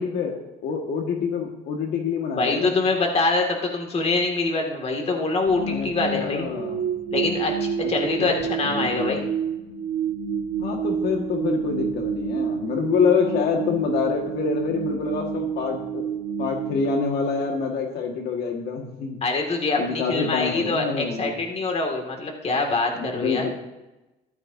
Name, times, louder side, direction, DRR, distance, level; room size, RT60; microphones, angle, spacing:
voice 1, 0.0-2.7 5.6-6.9 7.8-7.9 8.2-8.3 8.8-9.2 10.6-16.0 16.4-19.2 19.8-21.3 23.0-23.5, left 6 dB, 70° left, 2 dB, 1.8 m, -26 dB
voice 2, 2.3-6.5 7.1-9.3 19.2-23.5, left 3 dB, 40° left, 2 dB, 2.2 m, -24 dB
sound 1, 5.5-17.6, right 6 dB, 85° right, 1.7 m, -29 dB
14.5 x 12.0 x 2.7 m, 1.0 s
cardioid pair, 110°, 17 cm